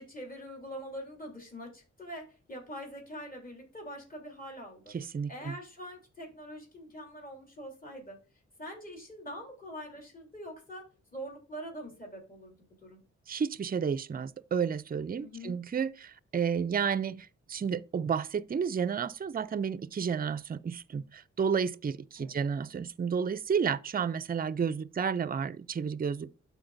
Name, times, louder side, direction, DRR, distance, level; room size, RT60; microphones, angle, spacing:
voice 1, 0.0-5.0 5.3-8.2 8.6-13.0 15.2-15.6 22.2-22.4, equal, 30° left, 3.3 m, -44 dB
voice 2, 4.9-5.6 13.3-26.3, right 6 dB, 30° right, 0.5 m, -31 dB
12.5 x 4.5 x 2.6 m
cardioid pair, 55°, 29 cm